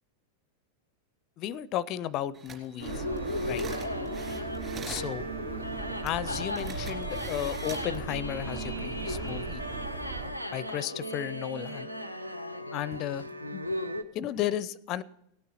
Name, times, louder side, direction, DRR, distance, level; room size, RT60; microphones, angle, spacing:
voice 1, 1.4-3.0 3.5-3.7 4.9-5.2 6.0-9.6 10.5-11.9 12.7-13.8 14.1-15.0, left 12 dB, 40° left, 23 dB, 0.5 m, -34 dB
sound 1, 2.3-5.1 6.1-6.2 6.5-8.0 8.5-8.7, right 6 dB, 25° right, 2.9 m, -44 dB
sound 2, 2.8-10.3, right 3 dB, 70° right, 3.3 m, -38 dB
sound 3, 2.8-14.0, equal, 90° right, 0.7 m, -36 dB
18.0 x 9.2 x 4.2 m, 0.82 s
figure-of-eight pair, 90°, 0 cm